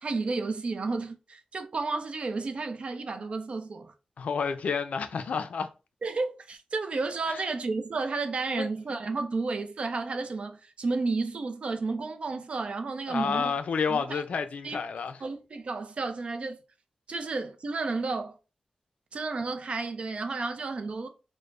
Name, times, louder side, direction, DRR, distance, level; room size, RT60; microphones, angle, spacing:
voice 1, 0.0-3.9 6.0-13.5 13.9-14.2 14.6-14.8 15.2-16.6 17.1-18.4 19.1-21.1, right 3 dB, 55° right, 0.4 m, -32 dB
voice 2, 4.2-5.7 7.3-7.4 8.5-8.7 13.1-15.2, left 5 dB, 85° left, 0.3 m, -30 dB
3.2 x 2.0 x 2.4 m
wide cardioid pair, 110°, 2 cm